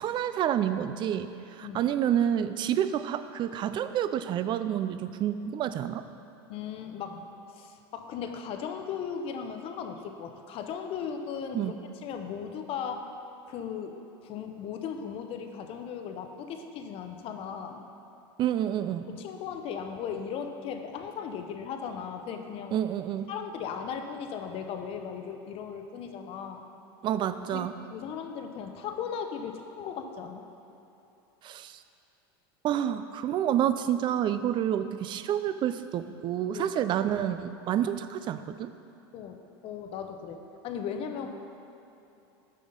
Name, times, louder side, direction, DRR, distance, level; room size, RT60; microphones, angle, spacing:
voice 1, 0.0-6.0 11.5-11.7 18.4-19.1 22.7-23.3 27.0-27.7 31.4-31.8 32.6-38.7, right 10 dB, 40° right, 11 dB, 0.4 m, -29 dB
voice 2, 6.5-13.1 13.5-14.0 14.2-17.9 19.1-22.7 23.3-26.7 27.5-27.6 27.9-30.4 36.5-36.6 37.7-37.8 39.1-41.3, left 7 dB, 45° left, 6 dB, 0.7 m, -37 dB
6.6 x 5.4 x 5.2 m, 3.0 s
supercardioid pair, 105°, 13 cm